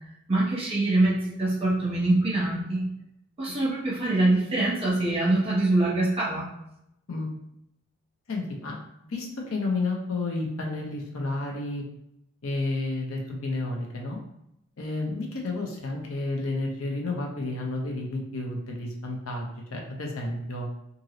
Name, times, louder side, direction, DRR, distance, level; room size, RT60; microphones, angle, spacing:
voice 1, 0.3-2.9 3.4-6.5, right 2 dB, 25° right, -5 dB, 0.9 m, -24 dB
voice 2, 8.3-8.8 9.1-11.8 12.4-14.2 14.8-20.7, left 2 dB, 70° left, 0 dB, 0.6 m, -31 dB
2.7 x 2.6 x 2.9 m, 0.80 s
head